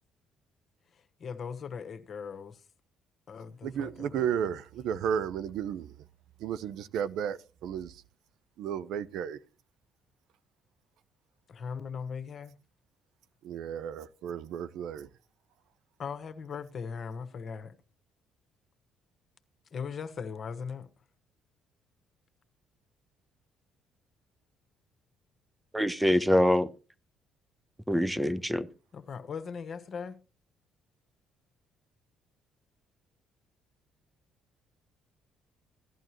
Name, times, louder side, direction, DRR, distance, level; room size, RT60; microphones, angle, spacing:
voice 1, 0.9-2.6 3.3-4.4 11.5-12.6 16.0-17.7 19.7-20.9 28.9-30.2, left 6 dB, 50° left, 1.3 m, -39 dB
voice 2, 3.6-5.9 6.4-8.0 8.6-9.4 13.4-15.1, right 8 dB, 75° right, 0.6 m, -33 dB
voice 3, 25.7-26.7 27.9-28.7, equal, 5° right, 0.9 m, -25 dB
16.0 x 11.0 x 3.0 m
supercardioid pair, 65°, 0 cm